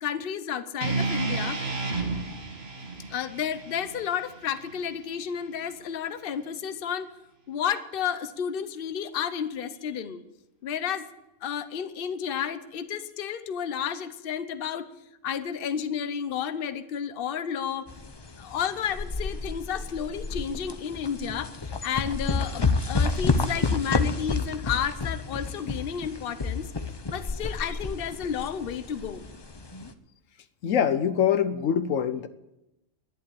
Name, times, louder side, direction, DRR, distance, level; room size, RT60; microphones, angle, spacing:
voice 1, 0.0-1.6 3.1-7.1 7.5-10.2 10.6-11.1 11.4-14.9 15.2-17.9 18.4-26.7 27.1-29.2, left 8 dB, 50° left, 1.0 m, -31 dB
sound 1, 0.8-5.0, right 3 dB, 50° right, 2.1 m, -32 dB
sound 2, 17.9-29.9, left 3 dB, 25° left, 0.6 m, -30 dB
voice 2, 30.6-32.3, left 8 dB, 80° left, 1.2 m, -24 dB
11.5 x 10.5 x 8.6 m
omnidirectional pair, 1.3 m